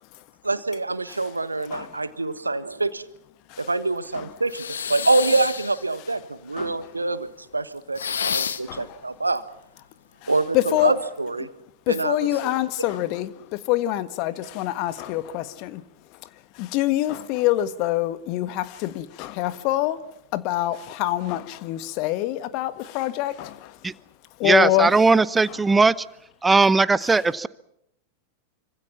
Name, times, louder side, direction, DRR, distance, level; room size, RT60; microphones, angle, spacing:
voice 1, 0.4-3.0 3.6-7.3 7.5-9.4 10.3-11.5 11.9-12.2 12.4-12.5 12.8-12.9, right 3 dB, 80° right, 1.4 m, -25 dB
voice 2, 1.7-2.0 3.5-3.7 4.1-4.3 6.6-6.8 8.1-8.4 8.7-9.0 10.2-10.9 11.9-15.8 16.5-20.0 20.3-23.8 24.4-24.9, left 15 dB, 45° left, 1.5 m, -26 dB
sound 1, 4.5-5.9 8.0-8.8, left 7 dB, 70° left, 1.4 m, -29 dB
voice 3, 24.4-25.9 26.4-27.5, right 3 dB, 10° right, 0.9 m, -18 dB
26.0 x 25.5 x 5.9 m
figure-of-eight pair, 90°, 0 cm